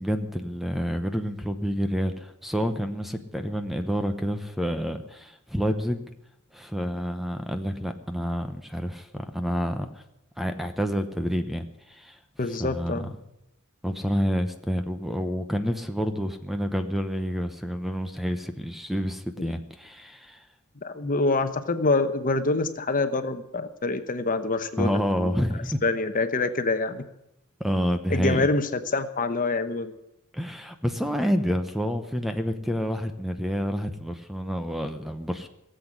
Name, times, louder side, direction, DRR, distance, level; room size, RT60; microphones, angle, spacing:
voice 1, 0.0-6.0 6.5-10.0 10.4-12.2 12.6-13.0 13.8-20.4 21.0-21.1 24.8-25.8 27.6-28.5 30.3-35.5, equal, ahead, 7 dB, 0.9 m, -28 dB
voice 2, 12.4-13.1 19.4-19.5 20.8-25.4 25.8-27.0 28.1-30.0, left 3 dB, 40° left, 9 dB, 1.0 m, -26 dB
17.5 x 8.1 x 9.7 m, 0.83 s
head